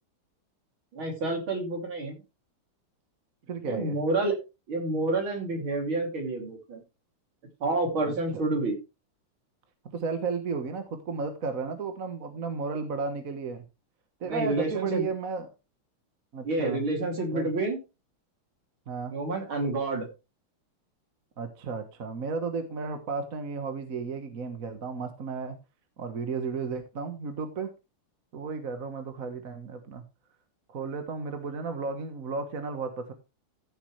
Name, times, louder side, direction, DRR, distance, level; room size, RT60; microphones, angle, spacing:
voice 1, 0.9-2.2 3.6-4.4 4.7-6.8 7.6-8.8 14.2-15.1 16.4-17.8 19.1-20.1, right 2 dB, 65° right, 2 dB, 3.8 m, -29 dB
voice 2, 3.5-4.0 8.0-8.4 9.9-13.6 14.2-15.5 16.3-16.9 17.3-17.5 18.9-19.1 21.4-25.6 26.0-27.7 28.3-30.0 30.7-33.1, right 5 dB, 45° right, 7 dB, 1.6 m, -33 dB
14.5 x 7.1 x 3.3 m, 0.27 s
omnidirectional pair, 2.4 m